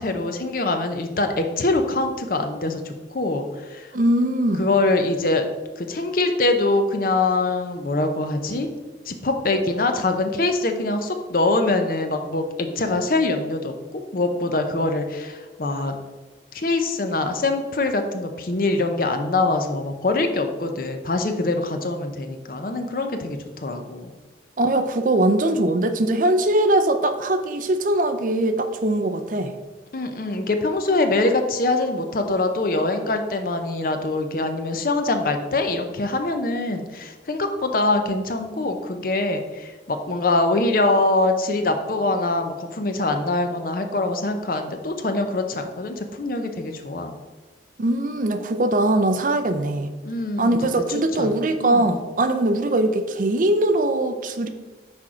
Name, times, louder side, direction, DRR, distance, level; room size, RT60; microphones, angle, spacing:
voice 1, 0.0-3.9 4.6-5.5 5.8-8.7 9.1-16.0 16.5-24.1 29.9-47.1 50.0-50.7 51.2-51.3 51.6-52.0, left 2 dB, 50° left, 6 dB, 0.6 m, -24 dB
voice 2, 3.9-4.7 24.6-29.5 47.8-49.9 50.4-54.5, right 1 dB, 45° right, 7 dB, 0.5 m, -21 dB
6.2 x 4.4 x 4.9 m, 1.3 s
head